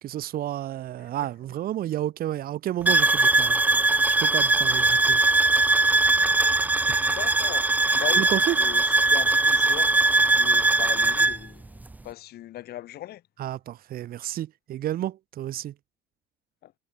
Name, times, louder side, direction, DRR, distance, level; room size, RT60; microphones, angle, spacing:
voice 1, 0.0-3.6 4.1-5.2 6.9-7.1 8.2-8.6 13.4-15.7, right 12 dB, 60° right, 1.2 m, -31 dB
sound 1, 2.9-11.4, right 2 dB, 10° right, 0.4 m, -21 dB
voice 2, 7.0-10.0 10.3-13.2 16.6-16.7, left 14 dB, 70° left, 4.8 m, -39 dB
cardioid pair, 110°, 17 cm